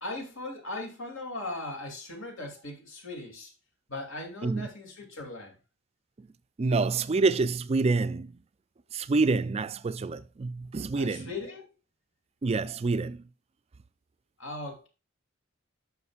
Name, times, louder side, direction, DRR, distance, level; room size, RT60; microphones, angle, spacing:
voice 1, 0.0-3.5 3.9-5.6 10.9-11.6 14.4-14.9, left 2 dB, 80° left, 2.5 m, -38 dB
voice 2, 6.6-8.3 8.9-11.3 12.4-13.2, right 3 dB, 30° right, 0.4 m, -27 dB
9.5 x 6.4 x 2.4 m
head